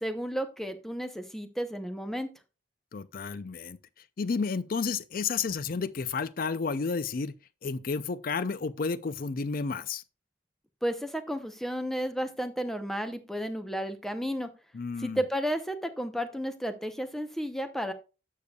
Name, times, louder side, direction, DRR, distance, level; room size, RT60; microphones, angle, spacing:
voice 1, 0.0-2.3 10.8-14.5 15.0-17.9, equal, ahead, 0.8 m, -32 dB
voice 2, 2.9-3.8 4.2-7.3 7.6-10.0 14.7-15.2, left 5 dB, 50° left, 0.5 m, -31 dB
12.0 x 6.7 x 2.3 m
head